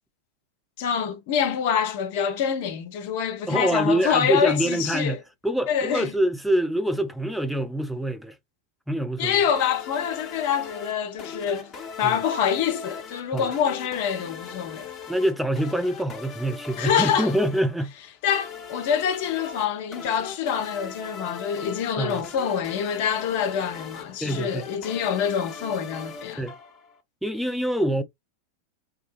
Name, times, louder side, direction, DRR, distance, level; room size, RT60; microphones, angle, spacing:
voice 1, 0.8-5.2 5.7-6.1 9.2-11.7 12.0-14.9 16.8-17.3 18.2-26.4, left 8 dB, 50° left, 0.7 m, -26 dB
voice 2, 3.5-5.2 5.4-8.4 8.9-9.4 12.0-12.2 13.3-13.5 15.1-17.9 22.0-22.2 24.2-24.7 26.4-26.6 27.2-28.0, right 1 dB, ahead, 0.5 m, -25 dB
sound 1, 9.5-27.0, left 5 dB, 25° left, 1.0 m, -40 dB
3.6 x 2.2 x 3.0 m
figure-of-eight pair, 90°, 0 cm